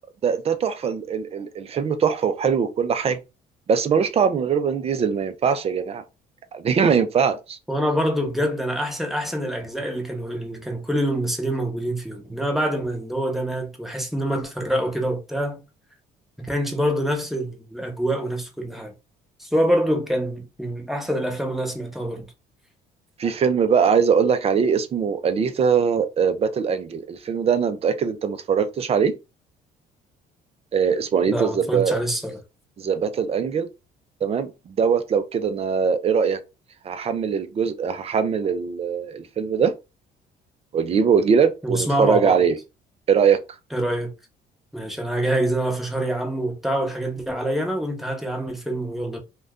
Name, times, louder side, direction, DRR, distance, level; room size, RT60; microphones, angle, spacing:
voice 1, 0.2-3.2 3.7-6.0 6.5-7.6 23.2-29.1 30.7-32.0 32.8-33.7 34.2-36.4 36.8-39.7 40.7-42.6 43.1-43.4, right 6 dB, 35° right, 0.5 m, -21 dB
voice 2, 7.7-15.6 16.4-18.9 19.4-22.3 31.3-32.4 41.6-42.4 43.7-44.1 44.7-49.2, right 1 dB, ahead, 0.8 m, -25 dB
2.5 x 2.2 x 3.5 m
cardioid pair, 110°, 17 cm